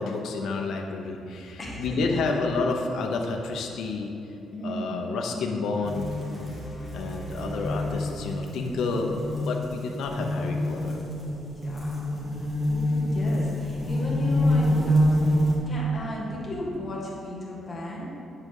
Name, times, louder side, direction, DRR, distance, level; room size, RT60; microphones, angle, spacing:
voice 1, 0.0-4.1 4.6-6.1 6.9-9.1 9.4-11.0, left 3 dB, 65° left, 1 dB, 0.8 m, -30 dB
voice 2, 1.6-2.2 4.5-5.2 11.6-12.4 12.7-18.1, left 1 dB, 20° left, -5 dB, 1.6 m, -35 dB
sound 1, 5.8-9.0, right 3 dB, 5° left, 1.1 m, -42 dB
sound 2, 5.8-15.6, left 1 dB, 20° right, 1.8 m, -27 dB
9.5 x 3.9 x 6.5 m, 2.8 s
cardioid pair, 180°, 0 cm